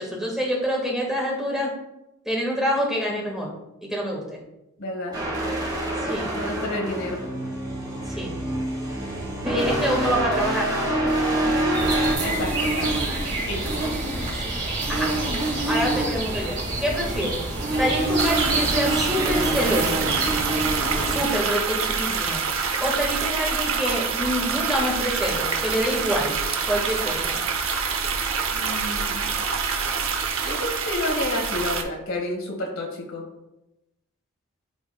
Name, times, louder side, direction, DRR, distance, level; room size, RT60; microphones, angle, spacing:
voice 1, 0.0-1.7 2.2-3.5 3.8-4.4 6.0-6.3 8.1-8.3 9.4-11.0 14.4-14.5 14.9-15.1 15.7-17.4 17.8-20.1 21.0-22.5 22.8-26.4 26.7-27.4, equal, ahead, -3 dB, 1.5 m, -26 dB
voice 2, 4.8-5.2 6.3-7.2 11.5-11.9 12.2-12.9 13.5-13.8 28.5-29.3 30.4-33.2, left 1 dB, 70° left, 0 dB, 1.8 m, -30 dB
sound 1, 5.1-12.1, right 1 dB, 20° right, 1.8 m, -26 dB
sound 2, 11.7-21.2, right 2 dB, 45° right, 2.0 m, -26 dB
sound 3, 18.2-31.8, right 5 dB, 70° right, 0.8 m, -26 dB
12.5 x 4.2 x 2.3 m, 0.90 s
head